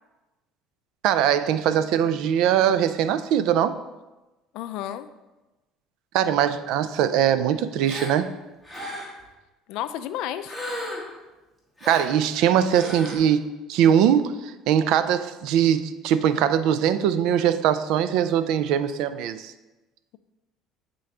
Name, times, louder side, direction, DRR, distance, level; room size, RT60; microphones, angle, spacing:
voice 1, 1.0-3.7 6.1-8.3 11.9-19.5, right 9 dB, 70° right, 12 dB, 0.3 m, -21 dB
voice 2, 4.5-5.1 9.7-10.5, left 11 dB, 70° left, 11 dB, 0.3 m, -31 dB
Gasp, 7.8-8.2 8.6-9.2 10.5-11.2 11.8-12.1 12.7-13.2, left 1 dB, ahead, 1.3 m, -34 dB
8.1 x 3.8 x 3.2 m, 1.1 s
cardioid pair, 120°, 0 cm